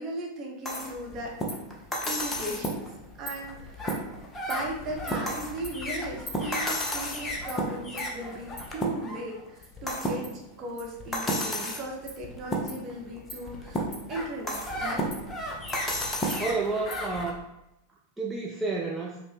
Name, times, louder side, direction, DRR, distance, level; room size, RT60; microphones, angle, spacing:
voice 1, 0.0-1.4 2.0-2.8 3.2-3.9 4.5-13.8 14.1-15.1, right 1 dB, 30° right, -1 dB, 0.9 m, -37 dB
sound 1, 0.6-17.3, equal, 15° left, 0.7 m, -33 dB
voice 2, 16.4-17.4 18.2-19.2, right 3 dB, 10° right, -2 dB, 0.4 m, -30 dB
5.2 x 2.2 x 3.3 m, 0.90 s
figure-of-eight pair, 90°, 0 cm